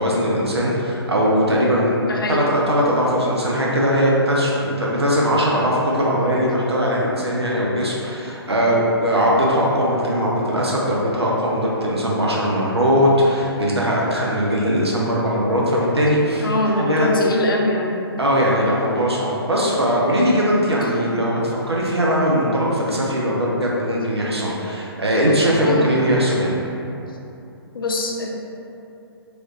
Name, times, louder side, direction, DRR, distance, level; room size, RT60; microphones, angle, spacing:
voice 1, 0.0-2.0 2.3-16.5 16.8-17.1 18.2-26.6, equal, 80° right, -4 dB, 0.6 m, -20 dB
voice 2, 2.1-2.5 16.4-18.0 25.6-25.8 27.7-28.3, left 1 dB, 55° left, 0 dB, 0.5 m, -22 dB
3.2 x 3.0 x 2.6 m, 2.8 s
figure-of-eight pair, 130°, 13 cm